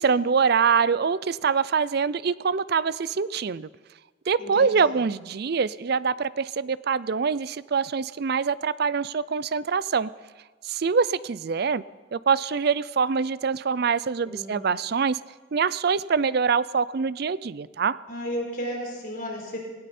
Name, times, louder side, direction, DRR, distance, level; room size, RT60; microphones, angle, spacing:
voice 1, 0.0-3.7 4.3-10.1 10.6-11.8 12.1-15.2 15.5-18.0, right 5 dB, 55° right, 18 dB, 0.4 m, -24 dB
voice 2, 4.4-4.9 14.2-14.6 18.1-19.6, equal, 50° left, 0 dB, 4.0 m, -33 dB
19.0 x 17.0 x 4.3 m, 1.3 s
head